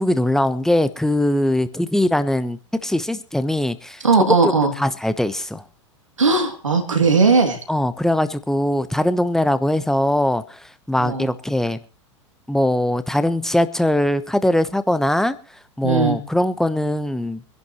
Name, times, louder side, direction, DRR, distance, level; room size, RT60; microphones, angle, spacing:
voice 1, 0.0-4.3 4.8-5.6 7.7-11.8 12.5-15.4 15.8-17.4, left 1 dB, 5° left, 1.1 m, -21 dB
voice 2, 4.0-4.7 6.2-7.6 11.0-11.3 15.8-16.2, right 4 dB, 85° right, 2.8 m, -17 dB
25.0 x 11.0 x 3.1 m
figure-of-eight pair, 90°, 16 cm